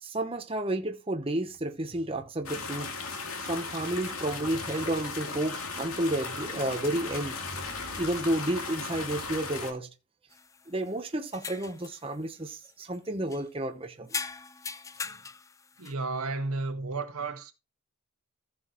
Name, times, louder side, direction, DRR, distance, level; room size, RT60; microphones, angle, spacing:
voice 1, 0.0-2.9 3.4-7.4 8.0-9.9 10.7-14.2, right 1 dB, 25° right, 0.9 m, -31 dB
sound 1, 2.5-9.7, left 4 dB, 75° left, 2.4 m, -36 dB
sound 2, 10.3-11.0 11.3-12.0 12.5-13.0 13.3-13.4 14.1-15.9, left 5 dB, 15° left, 0.4 m, -40 dB
voice 2, 15.8-17.5, right 3 dB, 80° right, 1.5 m, -33 dB
14.5 x 6.1 x 3.0 m
head